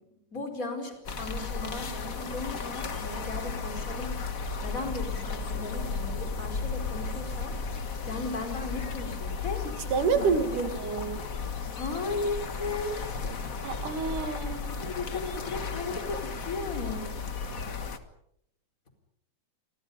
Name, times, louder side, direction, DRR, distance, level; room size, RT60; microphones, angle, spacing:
voice 1, 0.3-4.3 4.6-7.5 8.0-9.6 10.0-10.7 11.7-13.1 14.7-17.1, left 3 dB, 25° left, 4 dB, 5.0 m, -36 dB
sound 1, 1.0-18.0, left 4 dB, 40° left, 1.2 m, -34 dB
voice 2, 9.6-11.2 13.6-14.8, right 5 dB, 80° right, 8 dB, 3.7 m, -29 dB
28.5 x 25.5 x 5.6 m, 0.75 s
omnidirectional pair, 3.6 m